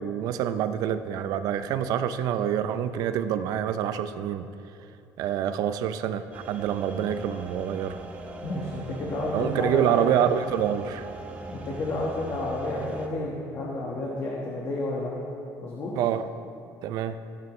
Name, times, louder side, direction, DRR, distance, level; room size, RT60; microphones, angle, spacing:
voice 1, 0.0-4.5 5.2-8.0 9.3-11.1 16.0-16.3 16.8-17.2, right 9 dB, 55° right, 11 dB, 0.5 m, -26 dB
sound 1, 6.3-13.1, right 2 dB, 15° right, 0.7 m, -40 dB
voice 2, 8.4-10.2 11.5-15.1 15.6-15.9, left 2 dB, 35° left, -4 dB, 1.3 m, -31 dB
15.5 x 9.5 x 3.1 m, 2.7 s
cardioid pair, 170°, 7 cm